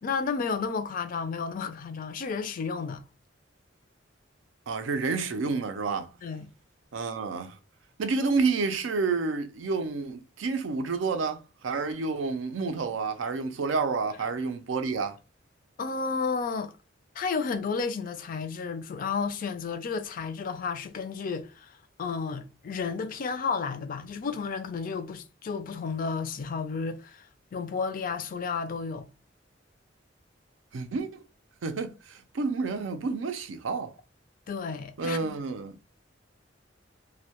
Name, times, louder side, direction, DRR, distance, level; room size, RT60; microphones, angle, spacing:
voice 1, 0.0-3.0 6.2-6.5 15.8-16.7 17.2-27.3 27.5-29.1 34.5-35.4, left 5 dB, 45° left, 0.4 m, -32 dB
voice 2, 4.7-6.1 6.9-7.6 8.0-15.2 30.7-31.2 31.6-33.9 35.0-35.8, right 4 dB, 90° right, 0.4 m, -29 dB
2.1 x 2.1 x 2.8 m
head